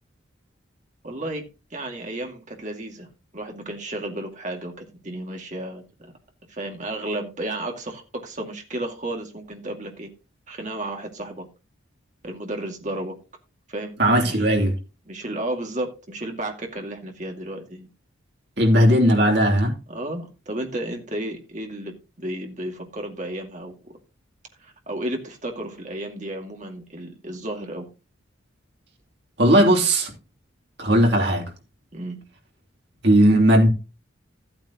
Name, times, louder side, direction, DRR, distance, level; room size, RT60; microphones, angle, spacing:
voice 1, 1.0-1.4 1.7-6.1 6.5-10.1 10.5-11.5 12.2-13.2 13.7-14.0 14.2-14.5 15.1-17.9 19.9-23.9 24.6-27.9 31.9-32.2, right 1 dB, 35° right, 2.3 m, -33 dB
voice 2, 14.0-14.7 18.6-19.7 29.4-30.1 30.8-31.5 33.0-33.7, equal, 55° right, 3.0 m, -17 dB
14.0 x 8.9 x 2.9 m
head